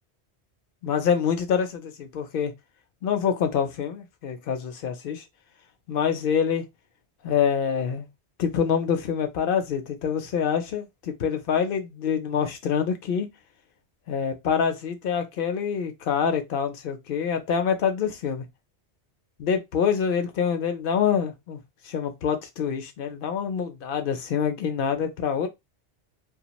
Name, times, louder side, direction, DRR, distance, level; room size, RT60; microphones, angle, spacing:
voice 1, 0.8-2.5 3.0-5.2 5.9-6.6 7.2-8.1 8.4-13.3 14.1-18.4 19.4-21.6 21.9-25.5, left 7 dB, 60° left, 0.7 m, -26 dB
2.4 x 2.3 x 2.9 m
omnidirectional pair, 1.2 m